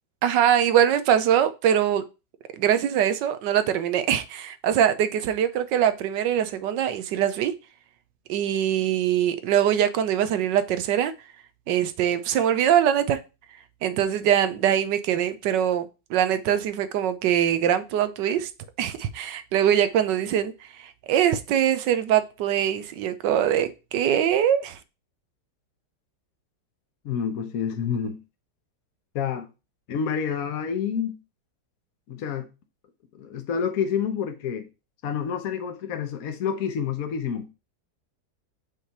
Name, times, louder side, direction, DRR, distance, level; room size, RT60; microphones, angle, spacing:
voice 1, 0.2-2.0 2.5-7.5 8.3-11.1 11.7-13.2 13.8-18.5 18.8-20.5 20.8-24.8, right 10 dB, 85° right, 1.3 m, -23 dB
voice 2, 27.0-28.2 29.1-29.5 29.9-31.2 32.1-32.5 33.1-34.7 35.0-37.5, left 7 dB, 60° left, 1.2 m, -28 dB
5.4 x 3.2 x 5.7 m
omnidirectional pair, 1.9 m